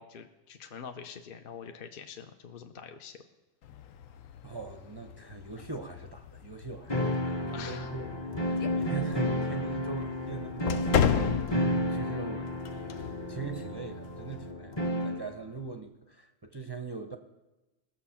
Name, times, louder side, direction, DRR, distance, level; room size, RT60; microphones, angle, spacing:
voice 1, 0.0-3.2 7.5-7.9, left 7 dB, 50° left, 6 dB, 0.8 m, -45 dB
sound 1, 3.6-14.5, left 9 dB, 90° left, 1.1 m, -35 dB
voice 2, 4.4-17.2, right 5 dB, 30° right, 4 dB, 0.5 m, -41 dB
sound 2, 6.9-15.3, equal, 25° left, 0.8 m, -32 dB
18.5 x 7.2 x 5.7 m, 1.1 s
omnidirectional pair, 1.3 m